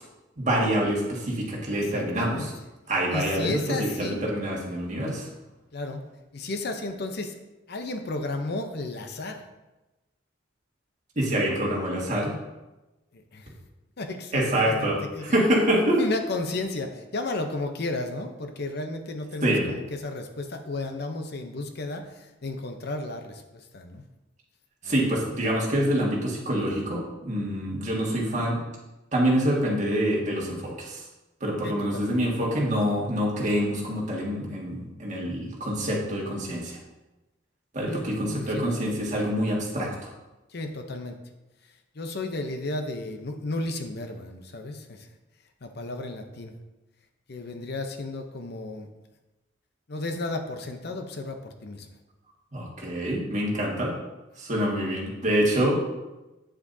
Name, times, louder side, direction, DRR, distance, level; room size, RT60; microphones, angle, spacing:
voice 1, 0.4-2.5 2.9-3.5 3.8-5.3 11.1-12.3 14.3-16.0 19.4-19.7 24.8-28.6 29.1-31.1 31.4-36.8 37.7-40.1 52.5-53.9 54.4-55.8, equal, 40° right, -3 dB, 1.8 m, -26 dB
voice 2, 1.7-2.5 3.1-4.2 5.7-6.1 6.3-7.4 7.7-9.4 13.1-13.5 14.0-15.2 16.0-24.0 24.8-25.1 31.6-32.2 37.9-38.7 40.5-41.2 41.9-45.1 45.6-46.5 47.3-48.9 49.9-51.9, left 2 dB, 55° left, 6 dB, 0.7 m, -33 dB
8.9 x 7.3 x 2.7 m, 1.1 s
head